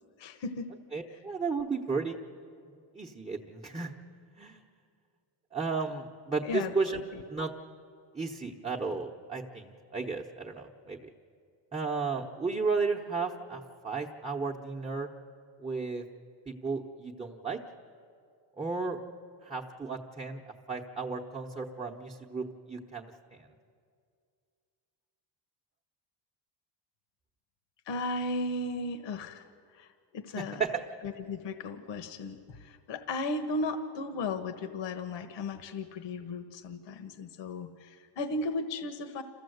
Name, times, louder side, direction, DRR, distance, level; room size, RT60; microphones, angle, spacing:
voice 1, 0.2-0.7 6.4-6.7 7.1-7.2 27.9-29.5 29.8-29.9 30.1-30.6 31.0-39.2, left 2 dB, 75° left, 8 dB, 1.2 m, -35 dB
voice 2, 0.9-2.2 2.6-3.9 4.4-4.6 5.5-7.0 7.3-7.5 8.1-11.1 11.7-15.1 15.6-16.0 16.5-17.6 18.6-19.0 19.4-20.4 20.7-23.5 30.4-30.7, right 4 dB, 15° right, -2 dB, 1.0 m, -34 dB
28.0 x 14.5 x 7.9 m, 2.3 s
cardioid pair, 150°, 45 cm